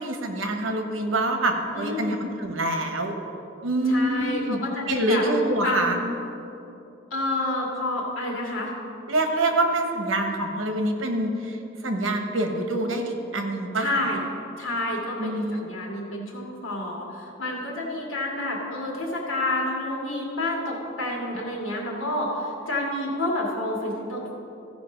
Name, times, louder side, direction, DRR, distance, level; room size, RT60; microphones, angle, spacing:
voice 1, 0.0-3.1 3.6-4.6 4.9-6.0 9.1-11.5 11.8-14.1 15.2-15.7, right 1 dB, 85° right, 4 dB, 1.1 m, -25 dB
voice 2, 1.7-2.2 3.8-5.2 5.6-6.1 7.1-8.7 13.7-14.2 14.6-24.4, left 1 dB, 85° left, -2 dB, 2.1 m, -29 dB
15.0 x 5.3 x 5.2 m, 2.8 s
head